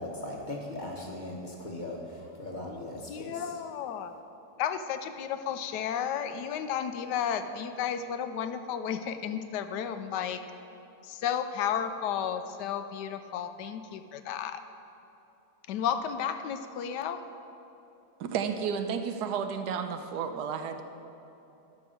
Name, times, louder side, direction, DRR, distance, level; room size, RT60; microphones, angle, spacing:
voice 1, 0.0-3.5, left 1 dB, 30° left, -1 dB, 1.1 m, -39 dB
voice 2, 2.6-4.1 4.6-10.4 11.1-14.6 15.7-17.3, left 8 dB, 85° left, 10 dB, 1.2 m, -33 dB
voice 3, 18.2-20.8, right 7 dB, 75° right, 7 dB, 1.2 m, -32 dB
11.5 x 5.3 x 6.4 m, 2.9 s
omnidirectional pair, 1.8 m